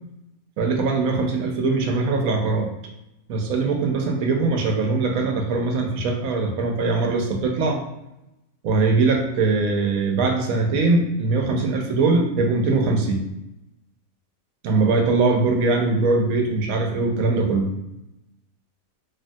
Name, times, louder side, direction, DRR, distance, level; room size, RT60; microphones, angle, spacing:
voice 1, 0.6-2.7 3.3-7.8 8.6-13.2 14.6-17.7, right 3 dB, 75° right, 2 dB, 1.0 m, -21 dB
3.1 x 2.2 x 2.5 m, 0.90 s
omnidirectional pair, 1.5 m